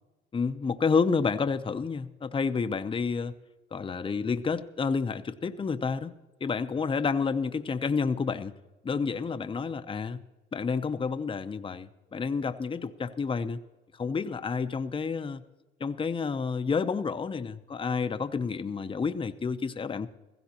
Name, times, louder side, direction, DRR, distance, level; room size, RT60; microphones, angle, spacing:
voice 1, 0.3-3.3 3.7-6.1 6.4-8.5 8.8-10.2 10.5-13.6 14.0-15.4 15.8-20.1, left 5 dB, 25° left, 10 dB, 0.6 m, -29 dB
16.0 x 15.5 x 2.9 m, 1.1 s
cardioid pair, 90°, 20 cm